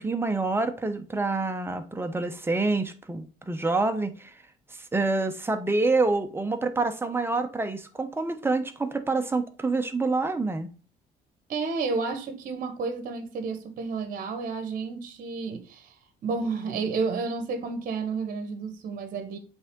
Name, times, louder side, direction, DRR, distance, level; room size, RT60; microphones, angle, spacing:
voice 1, 0.0-4.3 4.9-10.7, right 3 dB, 15° right, 0.8 m, -27 dB
voice 2, 11.5-15.9 16.2-19.4, right 4 dB, 55° right, 1.1 m, -31 dB
7.9 x 3.5 x 3.7 m
cardioid pair, 110°, 17 cm